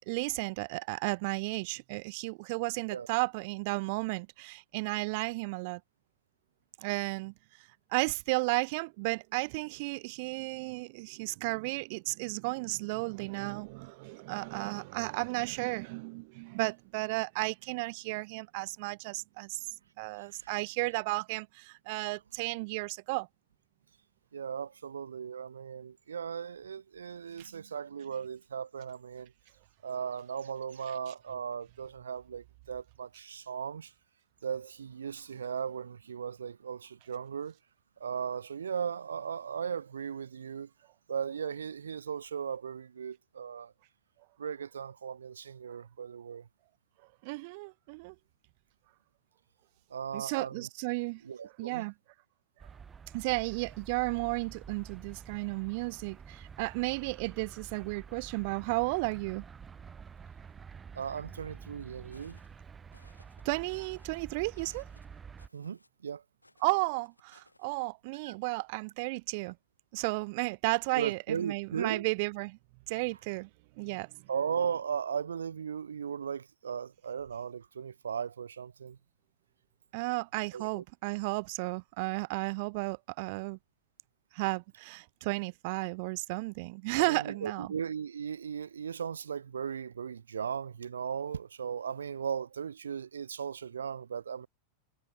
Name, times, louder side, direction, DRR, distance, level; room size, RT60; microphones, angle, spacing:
voice 1, 0.1-5.8 6.8-7.3 7.9-19.7 20.0-23.3 27.4-27.5 47.2-48.1 50.1-51.2 51.6-51.9 53.1-59.4 63.4-64.9 66.6-69.6 69.9-72.6 72.9-73.5 73.8-74.2 79.9-83.6 84.3-87.7, right 27 dB, 45° right, 1.0 m, -33 dB
voice 2, 20.2-20.5 24.3-29.3 29.8-33.9 34.4-37.6 38.0-40.7 41.1-43.7 44.4-46.5 49.9-50.7 51.2-51.9 60.9-62.4 65.5-66.2 68.3-68.4 70.9-72.0 74.3-79.0 80.5-80.8 87.0-94.5, right 7 dB, 70° right, 0.8 m, -37 dB
sound 1, 52.6-65.5, right 6 dB, 20° right, 0.9 m, -49 dB
sound 2, 61.8-62.6 62.9-63.4 63.7-64.2 64.5-66.1 66.4-67.7, left 1 dB, 85° left, 7.9 m, -62 dB
figure-of-eight pair, 90°, 0 cm